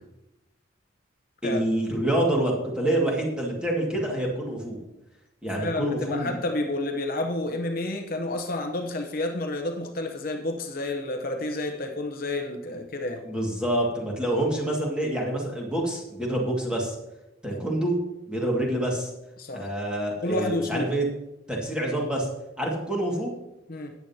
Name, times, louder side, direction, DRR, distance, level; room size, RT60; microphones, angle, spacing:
voice 1, 1.4-4.8 5.4-6.4 13.2-17.0 17.4-18.0 18.3-19.1 19.5-21.1 21.5-22.3 22.6-23.3, right 1 dB, 5° right, -2 dB, 2.0 m, -27 dB
voice 2, 5.6-13.2 17.5-17.6 19.4-19.7 20.2-20.9 23.7-23.9, left 2 dB, 50° left, 4 dB, 0.8 m, -30 dB
13.5 x 9.3 x 2.8 m, 0.94 s
head